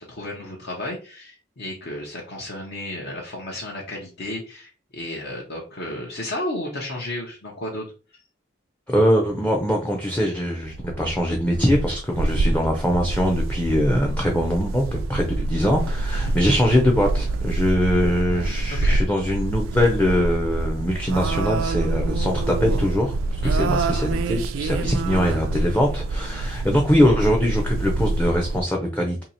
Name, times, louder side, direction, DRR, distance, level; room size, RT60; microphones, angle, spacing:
voice 1, 0.0-7.8 16.1-16.4 18.7-19.0 23.4-23.7 24.7-24.9 26.3-26.6, left 1 dB, 55° left, -2 dB, 0.9 m, -33 dB
voice 2, 8.9-29.2, equal, 10° left, 0 dB, 0.5 m, -22 dB
sound 1, 10.6-28.6, right 2 dB, 85° right, 0.3 m, -26 dB
2.8 x 2.8 x 4.1 m, 0.36 s
head